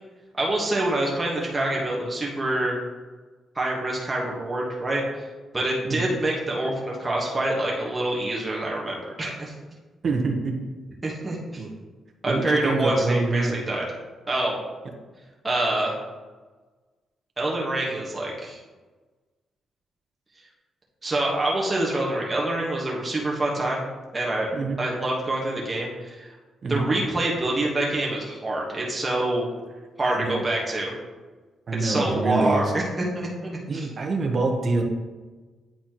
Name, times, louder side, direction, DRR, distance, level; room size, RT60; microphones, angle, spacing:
voice 1, 0.4-2.8 3.5-5.2 5.5-9.5 11.0-11.6 12.2-13.8 14.3-14.6 15.4-15.9 17.4-18.6 21.0-23.8 24.1-24.5 24.8-26.4 26.7-29.5 30.0-30.9 31.8-33.9, right 1 dB, 20° right, -4 dB, 1.3 m, -26 dB
voice 2, 10.0-10.5 11.6-11.7 12.3-13.6 24.5-24.8 26.6-26.9 30.0-30.5 31.7-32.7 33.7-34.8, right 3 dB, 50° right, 2 dB, 1.0 m, -25 dB
8.8 x 4.2 x 3.0 m, 1.3 s
cardioid pair, 95°, 0 cm